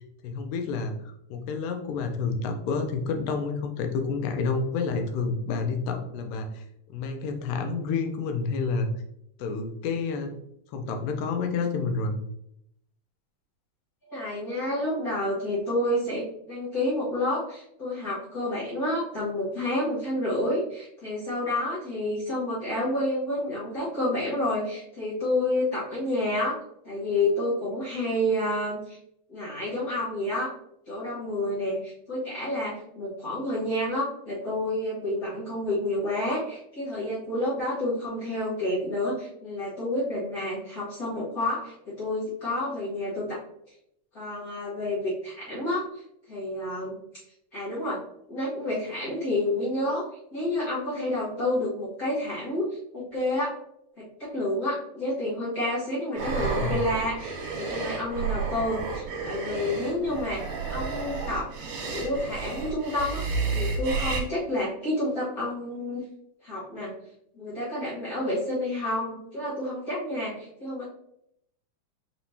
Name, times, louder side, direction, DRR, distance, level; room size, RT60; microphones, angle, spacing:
voice 1, 0.2-6.6 6.9-8.9 9.4-10.3 10.7-12.2 56.4-56.8, left 4 dB, 85° left, 5 dB, 2.3 m, -29 dB
voice 2, 14.1-26.6 26.8-29.0 29.3-30.5 30.9-43.4 44.1-45.8 46.3-47.0 47.5-48.0 48.3-50.0 50.3-52.7 52.9-53.5 54.2-60.4 60.7-61.5 61.8-63.2 63.5-66.0 66.4-66.9 67.3-70.8, left 1 dB, 65° left, -9 dB, 0.8 m, -29 dB
sound 1, 56.2-64.2, right 4 dB, 70° right, 2.4 m, -31 dB
6.0 x 3.0 x 2.7 m, 0.75 s
omnidirectional pair, 3.8 m